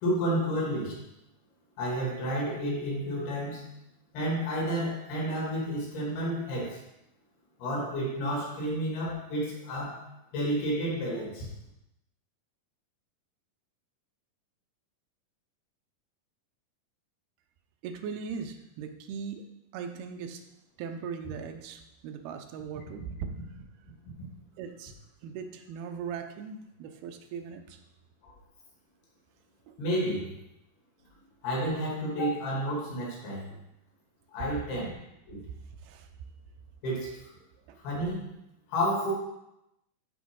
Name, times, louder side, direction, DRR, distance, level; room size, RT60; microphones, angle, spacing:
voice 1, 0.0-1.0 1.8-3.7 4.1-6.8 7.6-10.0 10.3-11.5 24.2-24.3 28.2-28.3 29.8-30.3 31.4-33.5 34.3-34.9 35.3-35.4 36.8-37.2 37.8-38.3 38.7-39.1, equal, 85° left, -3 dB, 4.4 m, -30 dB
voice 2, 17.8-19.4 19.7-20.4 20.8-23.1 24.6-24.9 25.2-27.8 29.7-29.8 33.5-33.6 34.7-34.9 35.8-36.1 37.7-37.8, right 6 dB, 85° right, 6 dB, 2.7 m, -39 dB
12.0 x 5.1 x 3.7 m, 0.86 s
omnidirectional pair, 4.3 m